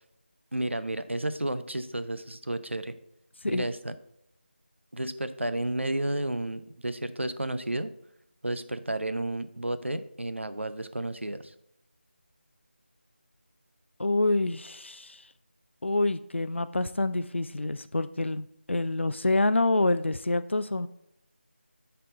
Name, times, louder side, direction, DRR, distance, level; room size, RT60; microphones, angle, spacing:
voice 1, 0.5-2.9 3.5-4.0 4.9-7.9 8.4-11.5, right 1 dB, 85° right, 11 dB, 0.6 m, -32 dB
voice 2, 14.0-15.3 15.8-20.9, left 2 dB, 75° left, 12 dB, 0.4 m, -27 dB
8.6 x 4.5 x 3.8 m, 0.80 s
figure-of-eight pair, 165°, 6 cm